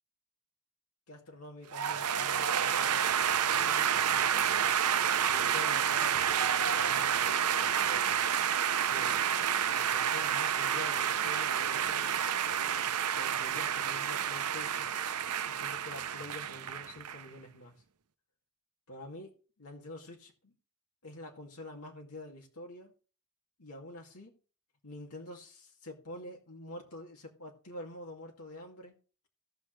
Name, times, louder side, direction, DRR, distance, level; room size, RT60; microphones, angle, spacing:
voice 1, 1.1-3.0 3.4-4.7 5.1-8.2 8.9-9.2 9.6-12.3 12.6-15.0 15.2-17.7 18.9-20.5 21.0-22.9 23.6-24.3 24.8-29.0, left 1 dB, 80° left, 0 dB, 2.4 m, -47 dB
sound 1, 1.7-17.2, right 8 dB, 85° right, 0.7 m, -29 dB
17.5 x 6.2 x 3.3 m, 0.38 s
head